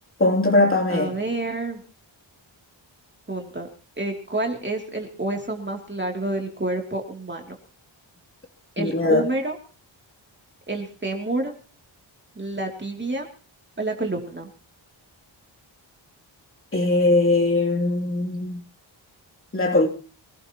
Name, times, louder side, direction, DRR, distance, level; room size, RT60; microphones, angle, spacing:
voice 1, 0.2-1.2 8.8-9.3 16.7-18.6 19.5-19.9, left 2 dB, 25° left, 3.0 m, -20 dB
voice 2, 0.9-1.8 3.3-3.7 4.0-7.6 8.8-9.6 10.7-11.5 12.4-13.3 13.8-14.5, right 2 dB, 25° right, 2.9 m, -28 dB
24.5 x 17.0 x 3.0 m
wide cardioid pair, 130°, 47 cm